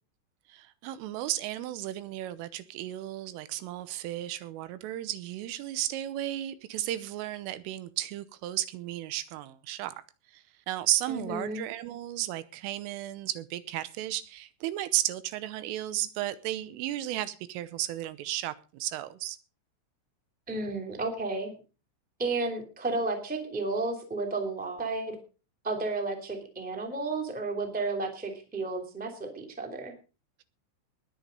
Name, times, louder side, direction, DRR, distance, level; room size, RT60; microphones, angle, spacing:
voice 1, 0.5-10.0 10.3-19.4, right 14 dB, 80° right, 3.3 m, -34 dB
voice 2, 11.1-11.6 20.5-21.5 22.2-25.1 25.6-29.9, right 3 dB, 5° right, 1.4 m, -32 dB
20.5 x 7.3 x 5.3 m
omnidirectional pair, 5.9 m